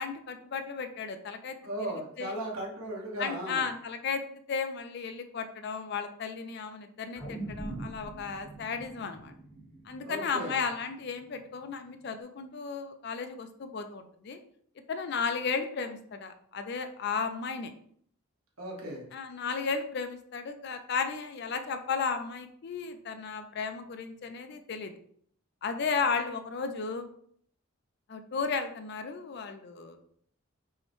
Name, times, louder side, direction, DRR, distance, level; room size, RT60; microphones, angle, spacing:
voice 1, 0.0-1.6 2.2-2.3 3.2-4.2 4.5-9.3 9.9-14.4 14.9-17.7 19.1-24.9 25.6-27.1 28.1-30.0, left 5 dB, 50° left, 8 dB, 0.4 m, -34 dB
voice 2, 1.6-3.7 10.0-10.6 18.6-19.0, right 1 dB, 75° right, -2 dB, 1.2 m, -36 dB
sound 1, 7.1-11.6 12.1-12.2, right 2 dB, ahead, 0.8 m, -43 dB
5.4 x 2.1 x 3.0 m, 0.63 s
head